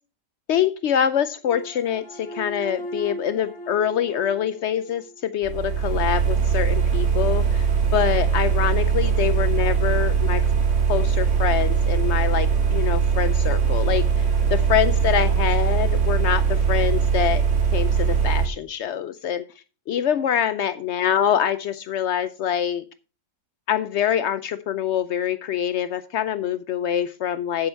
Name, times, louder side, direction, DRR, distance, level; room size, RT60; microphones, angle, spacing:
voice 1, 0.5-7.7 7.9-10.4 10.9-17.4 17.7-19.5 19.9-22.9 23.7-27.7, left 9 dB, 85° left, 13 dB, 0.6 m, -25 dB
sound 1, 1.4-5.7, equal, 40° left, 2.4 m, -38 dB
sound 2, 5.4-18.5, right 6 dB, 45° right, 1.7 m, -21 dB
8.7 x 7.9 x 4.4 m, 0.35 s
omnidirectional pair, 1.8 m